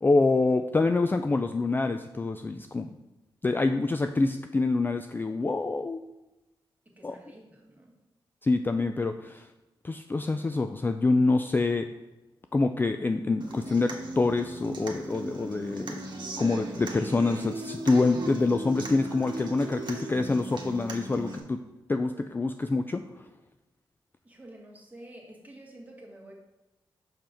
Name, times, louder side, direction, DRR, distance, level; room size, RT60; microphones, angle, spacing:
voice 1, 0.0-2.9 3.4-6.0 7.0-7.2 8.4-9.5 9.8-11.8 12.5-16.0 16.4-21.6 21.9-23.0, left 3 dB, 20° left, 7 dB, 0.3 m, -26 dB
voice 2, 7.0-7.9 24.2-26.3, right 1 dB, 20° right, -2 dB, 1.8 m, -49 dB
Human voice / Acoustic guitar, 13.4-21.4, right 2 dB, 60° right, 1.2 m, -38 dB
5.8 x 5.3 x 4.3 m, 1.0 s
cardioid pair, 65°, 9 cm